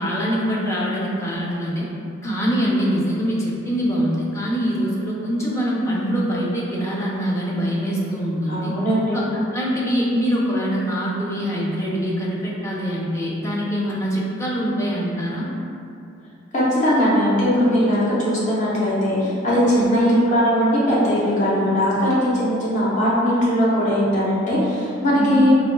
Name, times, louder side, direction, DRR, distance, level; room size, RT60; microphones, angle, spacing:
voice 1, 0.0-1.9 2.2-8.8 9.1-9.2 9.5-15.5 19.9-20.1 25.1-25.5, equal, 15° left, -5 dB, 0.5 m, -24 dB
voice 2, 8.5-9.2 16.5-25.5, equal, 35° left, -8 dB, 0.8 m, -19 dB
4.1 x 3.0 x 2.2 m, 2.6 s
head